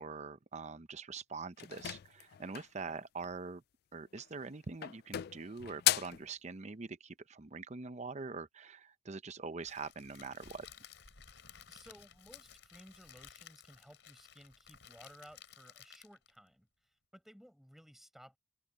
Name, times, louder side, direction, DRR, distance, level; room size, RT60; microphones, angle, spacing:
voice 1, 0.0-3.6 3.9-10.7, right 4 dB, 40° right, 0.7 m, -44 dB
sound 1, 1.6-2.8 4.1-4.5 4.8-6.3, left 14 dB, 60° left, 0.3 m, -35 dB
Crackle, 9.6-16.4, left 8 dB, 85° left, 3.7 m, -56 dB
voice 2, 11.7-18.4, equal, ahead, 6.7 m, -58 dB
head